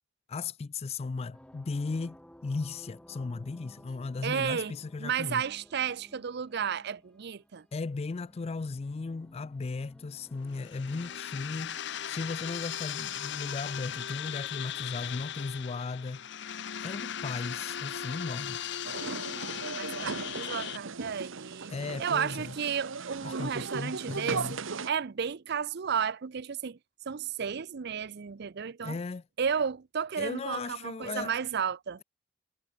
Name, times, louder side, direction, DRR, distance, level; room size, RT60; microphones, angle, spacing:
voice 1, 0.3-5.4 7.7-11.8 12.1-16.2 16.8-18.6 21.7-22.5 23.2-24.6 28.8-29.2 30.2-31.3, left 4 dB, 30° left, 0.4 m, -36 dB
sound 1, 1.3-11.2, equal, 5° left, 1.3 m, -56 dB
voice 2, 4.2-4.7 5.0-7.6 19.7-21.7 22.0-24.6 24.9-26.8 27.1-29.0 29.4-32.0, right 7 dB, 55° right, 0.5 m, -33 dB
sound 2, 10.5-20.8, left 9 dB, 65° left, 0.9 m, -38 dB
sound 3, 18.8-24.9, right 4 dB, 90° right, 1.1 m, -38 dB
head